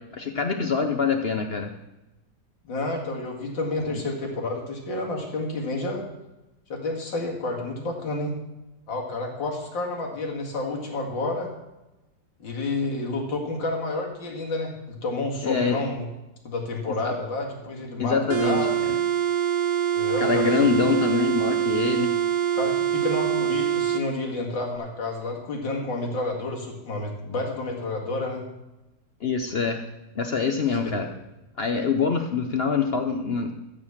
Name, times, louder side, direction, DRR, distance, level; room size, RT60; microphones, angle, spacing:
voice 1, 0.1-1.7 15.4-15.8 17.0-17.1 18.0-18.6 20.2-22.1 29.2-29.8 30.2-31.1 31.6-33.5, left 5 dB, 65° left, 5 dB, 0.6 m, -24 dB
voice 2, 2.6-6.0 6.7-8.3 8.9-11.5 12.4-16.1 16.4-18.8 19.9-20.7 22.6-28.4 31.0-31.1, left 2 dB, 80° left, -1 dB, 2.7 m, -30 dB
sound 1, 18.3-24.1, right 9 dB, 55° right, 1.3 m, -24 dB
14.0 x 5.1 x 7.2 m, 0.99 s
omnidirectional pair, 2.0 m